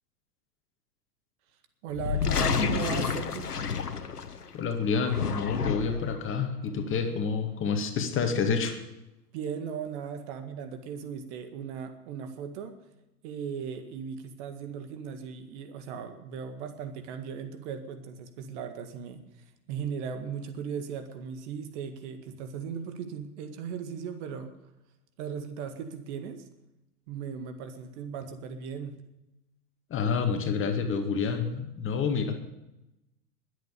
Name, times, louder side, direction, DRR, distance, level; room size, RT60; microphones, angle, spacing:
voice 1, 1.8-3.5 9.3-12.8 13.2-19.2 19.7-24.6 25.2-26.4 27.1-28.9, right 7 dB, 50° right, 8 dB, 1.9 m, -37 dB
sound 1, 1.9-4.5 5.0-6.1, left 6 dB, 80° left, 1.3 m, -29 dB
voice 2, 4.5-8.8 29.9-32.4, left 5 dB, 25° left, 5 dB, 2.2 m, -28 dB
21.5 x 8.3 x 6.9 m, 0.93 s
figure-of-eight pair, 95°, 45 cm